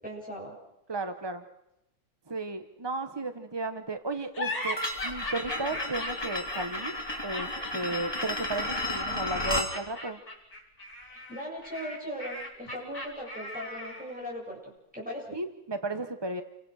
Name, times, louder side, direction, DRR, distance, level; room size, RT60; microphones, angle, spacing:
voice 1, 0.0-0.6 11.1-15.4, equal, 5° right, -3 dB, 7.5 m, -39 dB
voice 2, 0.9-1.4 2.3-4.8 5.0-7.0 7.2-10.2 15.3-16.4, right 2 dB, 20° right, 8 dB, 0.6 m, -34 dB
sound 1, 4.3-14.2, left 1 dB, 45° left, 6.6 m, -38 dB
sound 2, 4.8-9.7, left 1 dB, 10° left, 3.1 m, -33 dB
29.5 x 23.5 x 6.4 m, 0.87 s
omnidirectional pair, 2.1 m